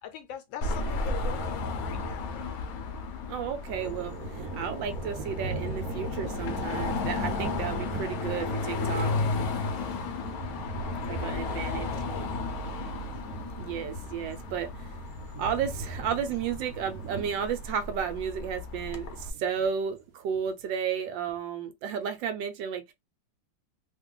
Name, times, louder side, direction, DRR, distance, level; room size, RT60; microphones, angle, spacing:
voice 1, 0.0-2.4 11.1-12.4, left 9 dB, 85° left, 1.3 m, -43 dB
Car passing by / Traffic noise roadway noise / Engine, 0.6-19.3, left 3 dB, 65° left, 0.9 m, -34 dB
voice 2, 3.3-9.1 11.1-11.9 13.6-14.9 15.4-22.9, right 7 dB, 75° right, 1.3 m, -33 dB
sound 1, 3.6-19.7, right 3 dB, 55° right, 1.1 m, -40 dB
3.1 x 2.2 x 3.6 m
omnidirectional pair, 2.1 m